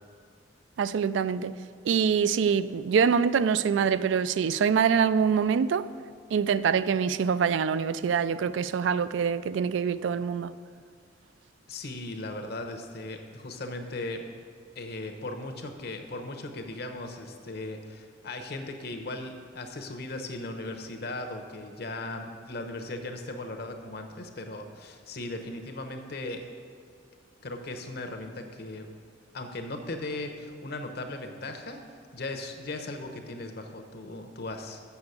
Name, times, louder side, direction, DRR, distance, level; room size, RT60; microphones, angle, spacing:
voice 1, 0.8-1.6 1.9-5.9 6.3-10.5, right 6 dB, 85° right, 0.3 m, -25 dB
voice 2, 11.7-14.2 14.7-26.5 27.4-28.9 29.3-31.8 32.1-34.8, left 2 dB, 60° left, 0.9 m, -37 dB
7.0 x 6.8 x 8.0 m
head